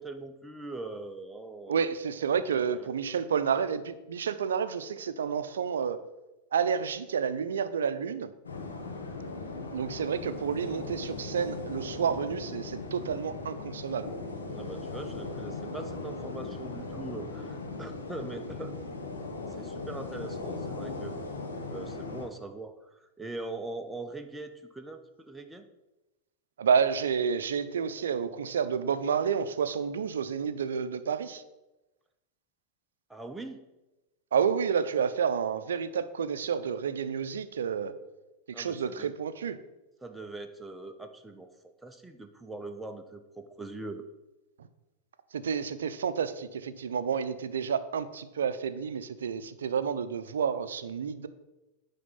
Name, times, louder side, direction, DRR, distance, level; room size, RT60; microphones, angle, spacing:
voice 1, 0.0-1.9 2.3-3.3 14.5-18.7 19.6-21.2 21.7-25.6 33.1-33.6 38.5-39.1 40.0-41.5 41.8-44.0, right 2 dB, 5° right, 5 dB, 0.7 m, -42 dB
voice 2, 1.7-6.0 6.5-8.3 9.7-14.1 26.6-31.4 34.3-37.9 38.5-39.6 45.3-51.3, right 7 dB, 80° right, 12 dB, 0.5 m, -30 dB
sound 1, 8.4-22.3, left 3 dB, 85° left, 1.4 m, -38 dB
9.3 x 3.6 x 5.6 m, 1.0 s
hypercardioid pair, 95°, 0 cm